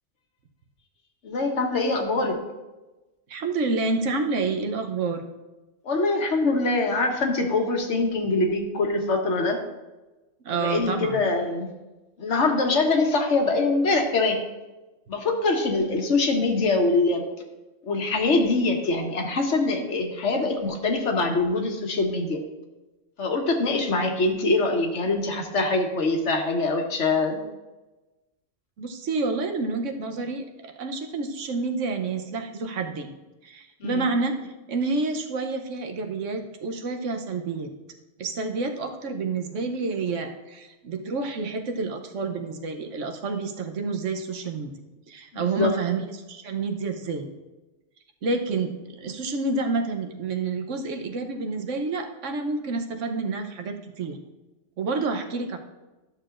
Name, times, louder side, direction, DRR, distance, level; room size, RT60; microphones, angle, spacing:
voice 1, 1.2-2.4 5.8-9.6 10.5-11.7 12.2-14.4 15.1-17.2 17.8-22.4 23.2-27.4 33.8-34.1 45.3-45.7, left 3 dB, 70° left, 3 dB, 1.4 m, -24 dB
voice 2, 3.3-5.2 10.4-11.2 28.8-33.1 33.4-37.7 38.2-44.7 45.1-47.3 48.2-54.2 54.8-55.6, right 3 dB, 80° right, 4 dB, 1.2 m, -29 dB
12.5 x 6.7 x 2.5 m, 1.1 s
omnidirectional pair, 1.3 m